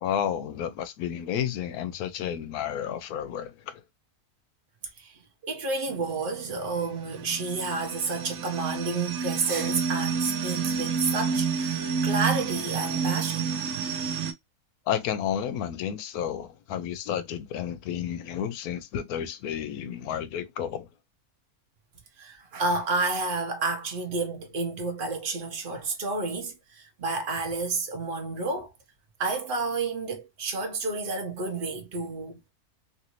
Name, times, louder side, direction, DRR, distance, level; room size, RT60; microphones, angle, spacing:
voice 1, 0.0-3.8 14.9-20.9, left 9 dB, 80° left, 1.1 m, -31 dB
voice 2, 5.0-13.5 22.2-28.7 29.2-32.5, right 3 dB, 40° right, 1.0 m, -30 dB
sound 1, 5.9-14.3, right 6 dB, 65° right, 0.8 m, -30 dB
3.1 x 2.6 x 2.9 m
omnidirectional pair, 1.6 m